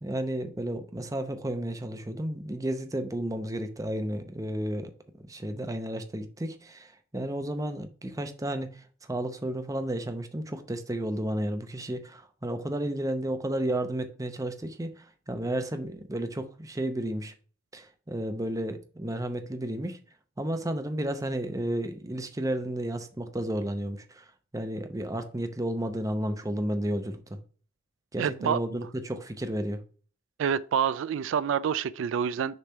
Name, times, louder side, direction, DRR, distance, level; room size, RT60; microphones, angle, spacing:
voice 1, 0.0-4.9 5.3-8.7 9.0-17.3 17.7-20.0 20.4-24.2 24.5-27.4 28.1-29.8, right 1 dB, 15° right, 0.7 m, -32 dB
voice 2, 28.2-28.6 30.4-32.6, right 7 dB, 75° right, 0.3 m, -27 dB
6.8 x 3.3 x 5.5 m
head